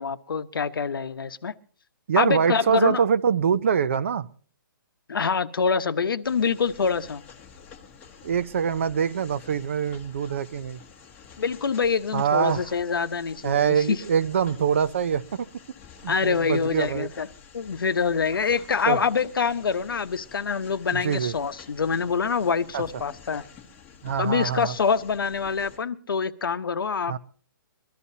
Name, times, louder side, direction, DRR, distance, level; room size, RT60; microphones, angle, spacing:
voice 1, 0.0-1.5 2.2-3.0 5.1-7.2 11.4-14.0 16.1-17.3 17.5-23.4 24.2-27.2, left 5 dB, 90° left, 11 dB, 1.0 m, -25 dB
voice 2, 2.1-4.3 8.2-10.8 12.1-12.7 13.4-15.5 16.0-17.1 18.8-19.0 20.9-21.3 22.7-22.8 24.0-24.8 27.1-27.2, right 7 dB, 35° right, 15 dB, 0.5 m, -24 dB
sound 1, 6.2-25.8, left 6 dB, 10° left, 1.1 m, -49 dB
23.5 x 12.5 x 2.8 m, 0.42 s
hypercardioid pair, 175°, 11 cm